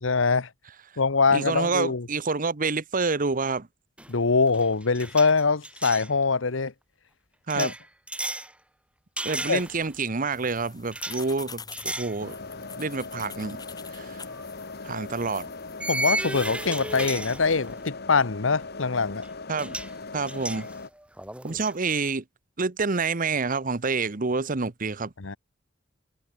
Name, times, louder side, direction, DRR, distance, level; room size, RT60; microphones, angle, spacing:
voice 1, 0.0-0.5 1.0-2.1 4.1-6.7 7.5-7.7 9.5-9.6 15.9-19.2 25.2-25.4, left 4 dB, 75° left, 1.0 m, -23 dB
voice 2, 1.3-3.7 7.5-7.7 9.2-12.4 12.8-13.6 13.9-14.2 14.8-15.5 19.5-19.8 20.1-20.7 21.4-22.2 22.6-25.1, right 4 dB, 45° right, 1.0 m, -28 dB
sound 1, 4.0-4.2 4.5-6.1 7.5-8.5 9.2-10.0 10.9-11.2 11.7-12.2 12.6-12.8 14.3-14.4 15.8-17.9 19.2-19.3 19.6-19.9 20.3-21.7, right 1 dB, 5° right, 3.6 m, -34 dB
sound 2, 10.3-17.2, left 5 dB, 20° left, 5.6 m, -46 dB
sound 3, 12.2-20.9, left 3 dB, 55° left, 1.6 m, -39 dB
head